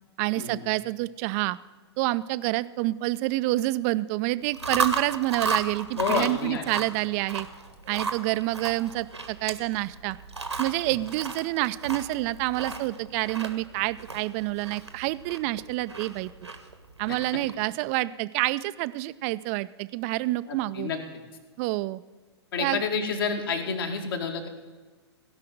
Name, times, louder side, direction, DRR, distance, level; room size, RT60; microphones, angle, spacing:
voice 1, 0.2-1.6 2.0-7.5 7.9-10.2 10.6-16.3 17.0-20.9 21.6-22.0 22.6-22.8, right 18 dB, 30° right, 16 dB, 0.4 m, -28 dB
Chewing mastication, 4.4-17.6, right 4 dB, 85° right, 1.5 m, -34 dB
voice 2, 5.9-6.7 20.5-21.0 22.5-24.5, left 5 dB, 55° left, 3 dB, 2.0 m, -29 dB
16.5 x 5.7 x 7.7 m, 1.4 s
figure-of-eight pair, 110°, 14 cm